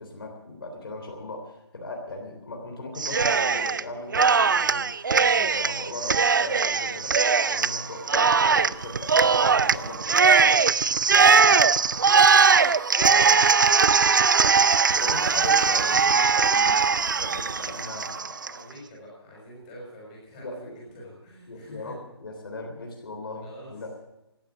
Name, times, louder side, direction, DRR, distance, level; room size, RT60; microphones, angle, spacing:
voice 1, 0.0-7.1 7.4-10.6 11.1-11.3 13.0-13.4 14.9-18.4 20.4-20.7 21.5-23.9, left 2 dB, 60° left, 2 dB, 3.5 m, -38 dB
Cheering, 3.0-3.8 4.1-18.5, right 5 dB, 45° right, 0.5 m, -20 dB
voice 2, 11.0-12.7 14.4-14.6 18.4-22.0 23.4-23.7, left 1 dB, 15° left, -4 dB, 6.2 m, -46 dB
17.5 x 12.5 x 6.2 m, 0.91 s
hypercardioid pair, 180°, 14 cm